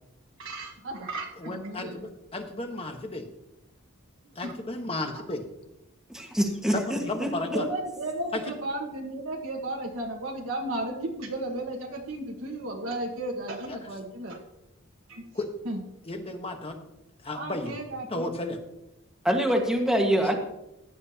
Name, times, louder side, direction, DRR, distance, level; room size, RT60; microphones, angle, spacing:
voice 1, 0.4-2.1 4.4-4.5 5.1-5.2 7.5-14.4 15.1-15.3 15.6-15.8 17.3-18.3 20.0-20.3, right 1 dB, 60° right, -1 dB, 1.5 m, -34 dB
voice 2, 1.4-3.3 4.4-5.4 6.7-7.6 8.3-8.4 13.7-13.8 15.3-15.5 16.1-16.8 17.2-17.8 18.1-18.6, left 2 dB, 25° left, 5 dB, 1.2 m, -33 dB
voice 3, 6.1-7.3 19.2-20.3, equal, 5° right, 1 dB, 1.5 m, -25 dB
15.5 x 10.5 x 2.8 m, 0.88 s
head